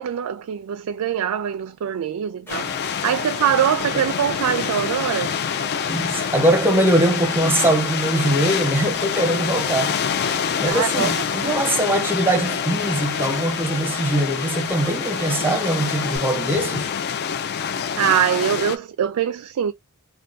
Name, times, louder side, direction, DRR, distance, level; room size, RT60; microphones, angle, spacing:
voice 1, 0.0-2.7 3.0-5.4 10.6-11.1 11.4-11.6 18.0-19.7, right 9 dB, 80° right, 0.3 m, -23 dB
sound 1, 2.5-18.8, left 7 dB, 45° left, 0.4 m, -26 dB
sound 2, 2.5-16.2, left 3 dB, 10° left, 1.0 m, -38 dB
voice 2, 5.9-10.0 10.6-16.9, right 1 dB, 10° right, 0.7 m, -22 dB
3.4 x 2.2 x 2.6 m
head